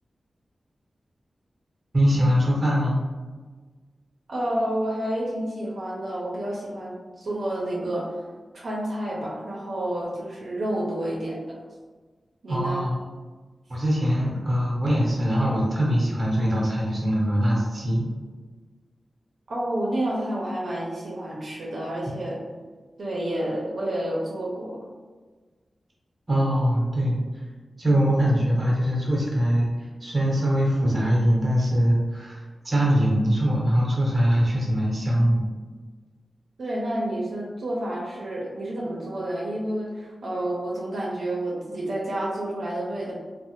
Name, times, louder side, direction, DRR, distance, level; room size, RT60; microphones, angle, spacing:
voice 1, 1.9-3.0 12.5-13.0 13.7-18.0 26.3-27.2 27.8-35.4, equal, 35° right, -4 dB, 0.8 m, -22 dB
voice 2, 4.3-8.2 8.5-11.6 12.4-12.9 19.5-22.4 23.0-24.9 36.6-43.1, right 1 dB, 75° right, -5 dB, 0.6 m, -29 dB
3.1 x 2.1 x 3.0 m, 1.4 s
wide cardioid pair, 140°, 0 cm